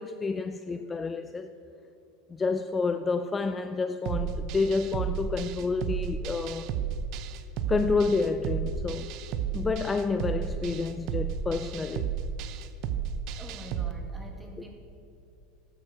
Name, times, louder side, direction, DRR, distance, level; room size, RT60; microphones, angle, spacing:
voice 1, 0.0-1.5 2.3-6.7 7.7-9.1 9.5-12.1, left 4 dB, 20° left, 0.4 m, -29 dB
sound 1, 4.1-13.9, right 8 dB, 55° right, 0.7 m, -33 dB
voice 2, 13.3-14.7, right 2 dB, 10° right, 2.0 m, -45 dB
12.5 x 7.9 x 6.8 m
supercardioid pair, 110°, 0 cm